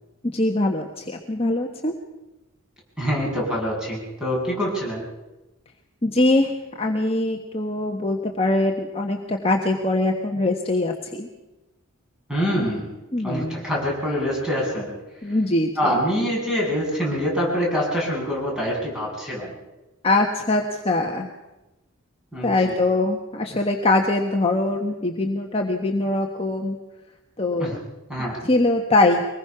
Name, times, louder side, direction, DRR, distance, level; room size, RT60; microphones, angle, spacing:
voice 1, 0.2-2.0 6.0-11.3 13.1-13.7 15.2-16.0 20.0-21.3 22.4-26.8 27.4-27.8 28.4-29.3, left 2 dB, 30° left, 1 dB, 1.3 m, -22 dB
voice 2, 3.0-5.0 12.3-12.9 13.2-14.9 15.8-19.5 22.3-22.8 27.6-27.7 28.1-28.4, equal, 5° right, -4 dB, 7.4 m, -25 dB
24.0 x 20.5 x 6.0 m, 1.0 s
head